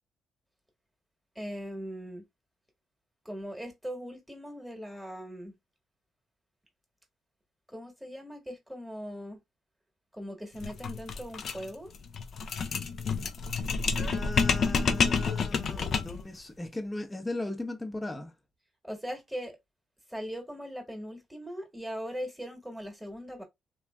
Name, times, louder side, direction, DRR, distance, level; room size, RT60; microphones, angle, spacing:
voice 1, 1.3-2.2 3.2-5.5 7.7-9.4 10.1-11.9 18.8-19.6 20.1-23.4, equal, 5° right, 1.2 m, -40 dB
sound 1, 10.6-16.3, left 5 dB, 55° left, 0.4 m, -29 dB
voice 2, 14.0-18.3, left 2 dB, 15° left, 0.7 m, -37 dB
3.0 x 2.6 x 2.2 m
cardioid pair, 90°, 0 cm